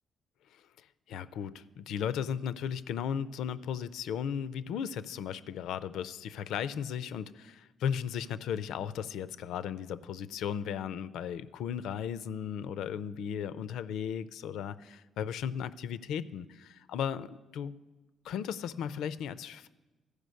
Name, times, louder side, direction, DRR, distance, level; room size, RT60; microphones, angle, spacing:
voice 1, 1.1-17.7 18.2-19.7, left 8 dB, 85° left, 14 dB, 0.4 m, -36 dB
14.0 x 4.9 x 6.4 m, 1.1 s
cardioid pair, 90°, 0 cm